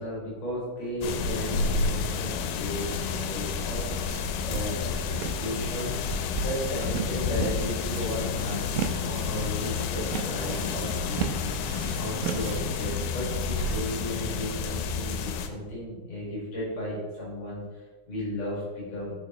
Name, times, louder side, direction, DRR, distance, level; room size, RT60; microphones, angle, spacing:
voice 1, 0.0-6.1 6.3-11.5 12.0-17.6 18.1-19.1, equal, 50° left, -6 dB, 2.2 m, -35 dB
sound 1, 1.0-15.5, left 5 dB, 85° left, 2.9 m, -30 dB
sound 2, 2.8-13.1, right 3 dB, 85° right, 2.9 m, -36 dB
sound 3, 11.1-11.5 12.1-12.2 12.5-12.6 12.9-13.0 13.5-14.0 14.6-14.9 15.2-15.3 15.5-15.8 16.3-16.4 16.6-16.8 17.2-17.3 17.5-17.6, right 3 dB, 65° right, 2.4 m, -43 dB
6.8 x 6.6 x 3.0 m, 1.3 s
omnidirectional pair, 5.2 m